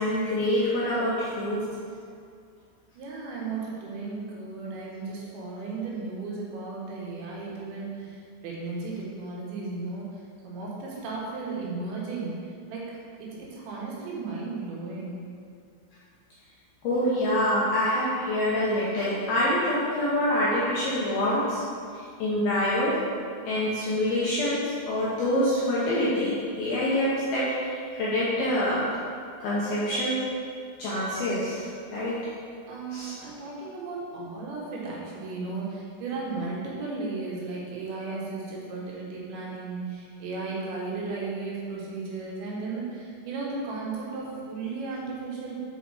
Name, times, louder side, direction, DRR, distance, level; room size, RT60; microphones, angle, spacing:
voice 1, 0.0-1.6 16.8-21.6 21.9-23.0 23.5-28.9 29.4-30.2 30.8-31.6 31.9-32.2 32.9-33.1, left 1 dB, 75° left, -8 dB, 2.3 m, -26 dB
voice 2, 3.0-8.2 8.4-10.1 10.4-12.3 12.7-12.9 13.2-15.2 32.7-45.6, right 3 dB, 75° right, -4 dB, 3.4 m, -35 dB
8.4 x 5.0 x 4.8 m, 2.3 s
omnidirectional pair, 5.7 m